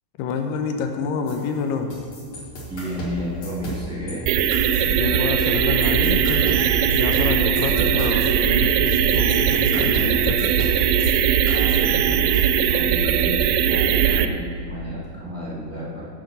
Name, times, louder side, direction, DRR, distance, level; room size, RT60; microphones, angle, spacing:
voice 1, 0.2-1.9 4.9-10.4 11.0-11.1, left 5 dB, 80° left, 5 dB, 2.3 m, -27 dB
sound 1, 1.3-4.2 4.5-5.5 5.8-11.1 11.5-12.4, equal, 50° left, 1.9 m, -36 dB
voice 2, 2.7-4.3 11.0-11.2 11.4-16.1, equal, 5° right, -8 dB, 1.3 m, -32 dB
sound 2, 4.3-14.3, right 9 dB, 85° right, 2.2 m, -19 dB
10.0 x 5.3 x 7.1 m, 2.1 s
omnidirectional pair, 4.1 m